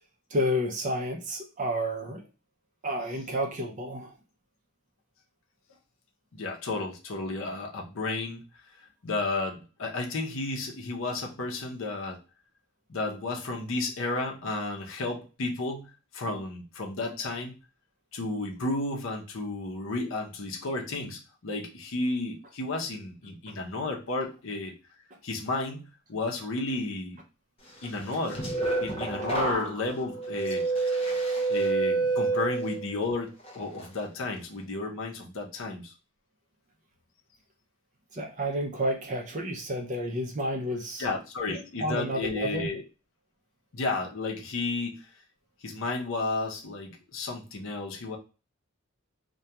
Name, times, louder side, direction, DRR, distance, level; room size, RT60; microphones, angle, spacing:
voice 1, 0.3-2.2 2.8-4.1 38.1-41.1 41.5-42.7, equal, 35° right, 2 dB, 0.5 m, -30 dB
voice 2, 6.3-8.4 9.0-12.2 12.9-17.5 18.1-24.7 25.2-27.2 27.8-28.4 28.8-31.0 31.5-35.9 41.0-42.8 43.7-45.1 45.6-48.2, left 2 dB, 70° left, 1 dB, 0.6 m, -32 dB
sound 1, 28.0-33.0 33.4-33.9, right 3 dB, 30° left, 0.5 m, -28 dB
2.3 x 2.2 x 2.7 m, 0.32 s
head